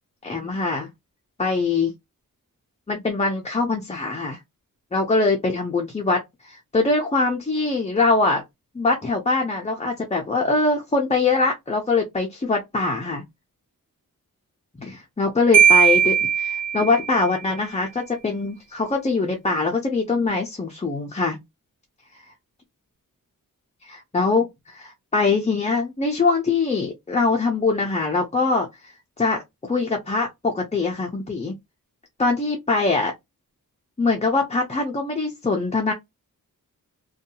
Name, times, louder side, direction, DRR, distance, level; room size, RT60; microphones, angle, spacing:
voice 1, 0.2-0.9 1.4-1.9 2.9-4.4 4.9-8.4 8.7-13.2 14.8-21.4 23.8-28.9 29.2-31.5 32.2-33.1 34.0-35.9, left 3 dB, 20° left, 0.4 m, -23 dB
Marimba xylophone, 15.5-17.3, right 8 dB, 45° right, 0.5 m, -18 dB
2.6 x 2.3 x 2.6 m
wide cardioid pair, 165°, 35 cm